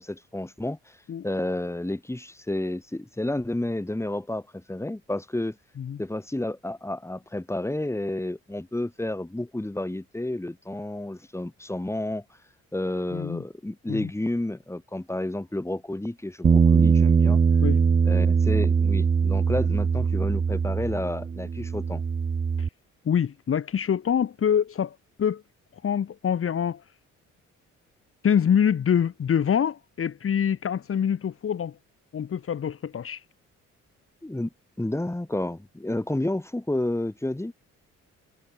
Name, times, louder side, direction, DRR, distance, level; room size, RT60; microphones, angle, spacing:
voice 1, 0.0-1.0 1.2-5.6 6.0-12.2 12.7-17.4 18.0-22.0 34.2-34.5 34.8-37.5, left 1 dB, 10° left, 4.1 m, -30 dB
voice 2, 13.1-13.4 13.9-14.1 17.6-17.8 22.6-22.7 23.0-25.4 25.8-26.8 28.2-31.7 32.1-33.2, left 8 dB, 45° left, 1.6 m, -25 dB
Bass guitar, 16.4-22.7, right 6 dB, 25° right, 0.6 m, -21 dB
cardioid pair, 90°, 30 cm